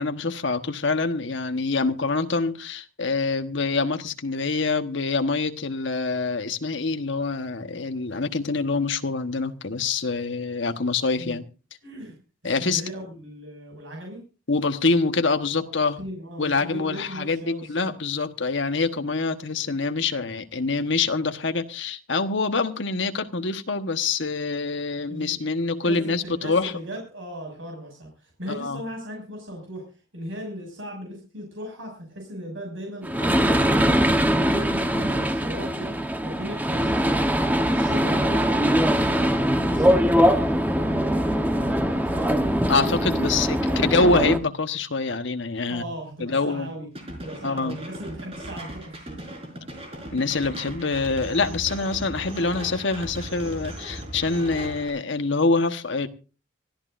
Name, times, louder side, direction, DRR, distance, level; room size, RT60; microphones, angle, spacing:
voice 1, 0.0-11.4 12.4-12.8 14.5-16.1 16.4-26.7 28.5-28.8 42.7-45.8 46.2-46.7 47.4-47.8 50.1-56.1, left 3 dB, 65° left, 1.2 m, -25 dB
voice 2, 11.8-12.1 12.4-14.2 15.8-17.9 25.1-25.4 25.8-29.8 30.1-33.9 34.3-35.9 36.2-39.3 39.6-42.5 43.3-44.0 45.7-49.1, equal, 70° right, 6.3 m, -37 dB
sound 1, 33.0-44.4, equal, 10° right, 1.0 m, -22 dB
sound 2, 46.9-54.9, right 1 dB, 30° right, 4.9 m, -38 dB
25.5 x 14.5 x 2.6 m
head